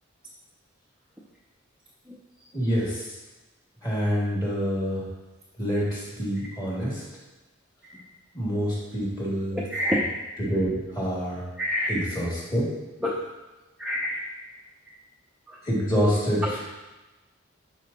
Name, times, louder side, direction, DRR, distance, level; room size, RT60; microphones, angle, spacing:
voice 1, 2.5-3.0 3.8-5.0 5.6-6.9 8.3-9.6 10.4-11.4 11.9-12.7 15.7-16.6, equal, 20° left, -7 dB, 2.5 m, -26 dB
voice 2, 9.5-10.1 11.6-12.0 13.0-13.2 13.8-14.2 15.5-15.6 16.4-16.5, left 1 dB, 5° right, -4 dB, 0.7 m, -27 dB
11.5 x 4.7 x 3.0 m, 1.1 s
head